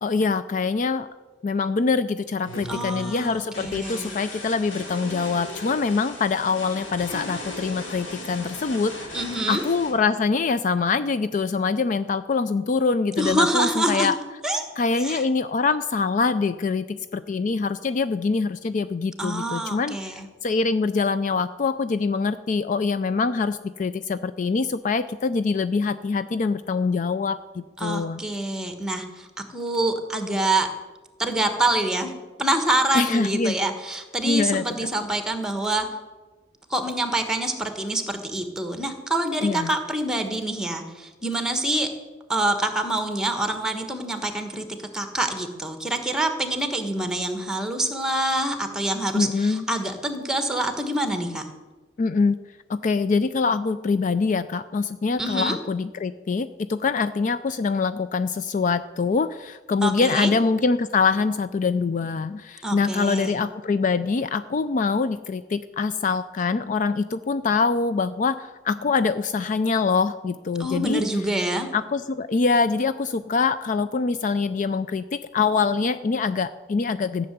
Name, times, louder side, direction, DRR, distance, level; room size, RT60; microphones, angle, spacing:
voice 1, 0.0-1.1 1.4-9.2 9.5-14.2 14.8-28.2 32.9-33.6 34.2-34.6 39.4-39.7 49.1-49.6 52.0-52.4 52.7-71.0 71.7-77.3, left 4 dB, 40° left, 12 dB, 0.4 m, -24 dB
sound 1, 2.4-9.9, left 1 dB, 75° left, 3.8 m, -37 dB
voice 2, 2.7-4.1 9.1-9.6 13.2-14.1 14.4-14.6 14.9-15.2 19.2-20.3 27.8-30.7 31.2-32.1 32.4-35.9 36.7-41.9 42.3-44.7 44.9-51.5 55.2-55.6 59.8-60.3 62.6-63.3 70.6-71.7, right 1 dB, 5° right, 7 dB, 1.4 m, -26 dB
14.5 x 6.7 x 9.3 m, 1.3 s
head